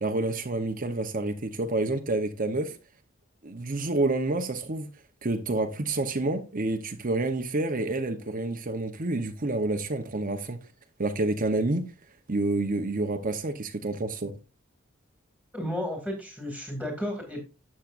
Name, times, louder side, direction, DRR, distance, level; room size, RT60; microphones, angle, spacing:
voice 1, 0.0-2.8 3.4-4.9 5.2-10.6 11.0-11.9 12.3-14.3, right 2 dB, 40° right, 0.9 m, -28 dB
voice 2, 15.5-17.4, left 1 dB, 5° left, 2.4 m, -33 dB
12.0 x 7.4 x 2.5 m
head